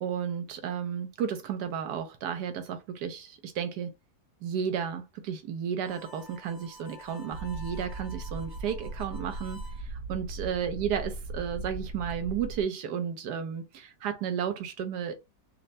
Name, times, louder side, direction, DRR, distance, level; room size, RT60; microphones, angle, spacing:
voice 1, 0.0-3.9 4.4-15.1, right 8 dB, 85° right, 1.3 m, -33 dB
Harmonica, 5.8-9.8, left 1 dB, 25° left, 0.7 m, -50 dB
sound 1, 7.3-12.6, right 2 dB, 70° right, 1.3 m, -38 dB
5.4 x 2.1 x 2.6 m
omnidirectional pair, 1.7 m